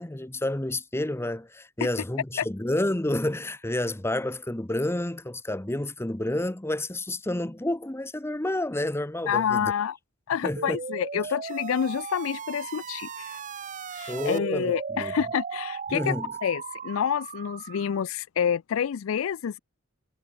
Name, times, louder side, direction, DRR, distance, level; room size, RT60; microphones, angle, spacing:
voice 1, 0.0-9.7 10.4-10.8 14.1-15.1 15.9-16.3, left 1 dB, 10° left, 0.8 m, -29 dB
voice 2, 9.3-10.0 10.3-13.4 13.9-16.1 16.4-19.6, left 8 dB, 70° left, 0.4 m, -28 dB
sound 1, 10.6-18.0, right 5 dB, 40° right, 0.7 m, -36 dB
head